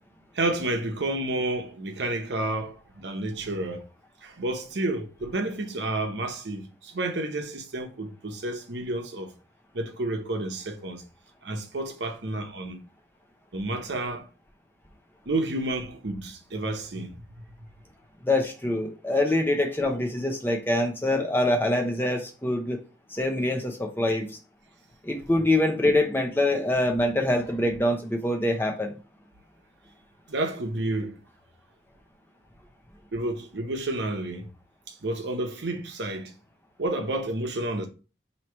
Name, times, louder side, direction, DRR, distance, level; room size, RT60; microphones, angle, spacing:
voice 1, 0.3-3.8 4.2-9.3 9.7-11.0 11.4-12.8 13.5-14.3 15.3-17.2 30.3-31.2 33.1-34.5 34.9-36.3 36.8-37.9, right 2 dB, 90° right, 0.8 m, -30 dB
voice 2, 18.2-22.8 23.1-24.4 25.0-28.9, left 1 dB, 10° left, 0.6 m, -25 dB
3.1 x 2.8 x 4.4 m
head